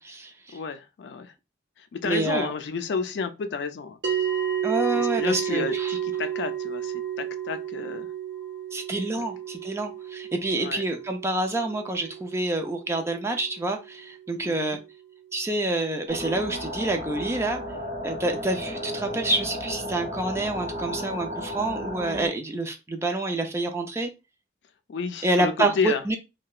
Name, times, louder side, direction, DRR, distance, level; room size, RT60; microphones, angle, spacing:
voice 1, 0.0-0.6 2.0-2.5 4.6-6.0 8.7-14.8 15.3-17.6 18.0-24.1 25.2-26.2, right 2 dB, 15° right, 0.4 m, -27 dB
voice 2, 0.5-1.3 1.8-4.0 4.9-8.1 9.2-9.3 10.6-10.8 14.4-14.8 24.9-26.0, left 5 dB, 75° left, 0.4 m, -31 dB
sound 1, 4.0-14.6, right 10 dB, 75° right, 0.8 m, -32 dB
sound 2, 16.1-22.3, equal, 35° right, 0.7 m, -34 dB
2.8 x 2.1 x 2.3 m
head